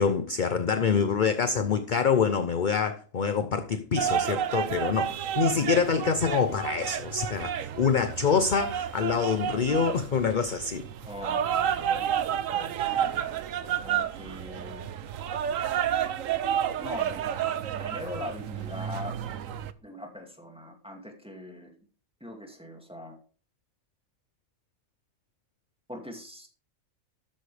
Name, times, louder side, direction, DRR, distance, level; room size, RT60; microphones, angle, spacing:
voice 1, 0.0-10.8, left 6 dB, 45° left, 9 dB, 0.8 m, -26 dB
sound 1, 4.0-19.7, right 9 dB, 70° right, 1.1 m, -30 dB
voice 2, 11.1-14.9 16.8-17.4 17.8-19.2 19.8-21.7 22.2-23.2 25.9-26.5, left 1 dB, 5° right, 2 dB, 2.3 m, -42 dB
13.0 x 9.6 x 3.4 m, 0.41 s
omnidirectional pair, 1.4 m